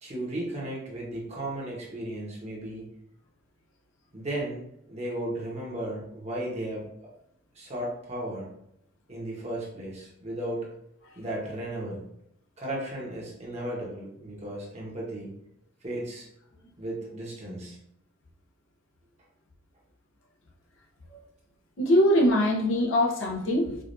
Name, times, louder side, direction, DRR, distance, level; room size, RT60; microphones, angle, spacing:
voice 1, 0.0-2.9 4.1-6.9 7.5-8.5 9.1-10.7 11.2-12.0 12.6-15.3 15.8-16.3 16.8-17.8, right 1 dB, 30° right, -4 dB, 1.1 m, -35 dB
voice 2, 21.8-23.8, equal, 70° left, -1 dB, 0.7 m, -22 dB
4.9 x 2.5 x 2.6 m, 0.75 s
head